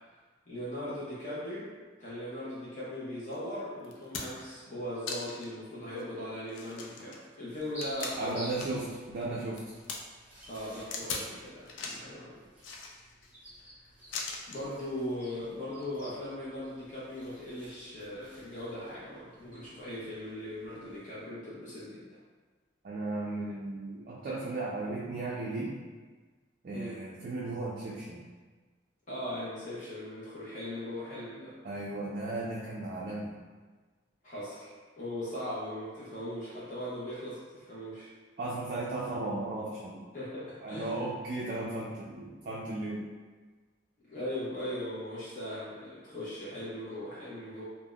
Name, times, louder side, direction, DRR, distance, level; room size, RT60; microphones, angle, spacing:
voice 1, 0.5-1.7 2.0-8.4 10.5-12.4 14.5-22.2 26.7-27.0 29.1-31.6 34.2-38.1 40.1-40.9 44.1-47.6, left 1 dB, 40° left, -9 dB, 0.7 m, -39 dB
sound 1, 3.3-3.4 3.8-4.5 5.1-5.5 6.0-6.1 6.5-8.9 9.2-10.0 10.9-11.3 11.7-12.1 12.6-13.3 14.1-14.7 15.7-15.9, left 4 dB, 85° left, 0.4 m, -40 dB
sound 2, 7.5-21.0, equal, 10° right, 0.7 m, -51 dB
voice 2, 8.2-9.7 22.8-25.8 26.6-28.3 31.6-33.3 38.4-40.1 40.6-43.1, right 2 dB, 50° right, -5 dB, 0.3 m, -35 dB
3.4 x 2.0 x 2.2 m, 1.4 s
head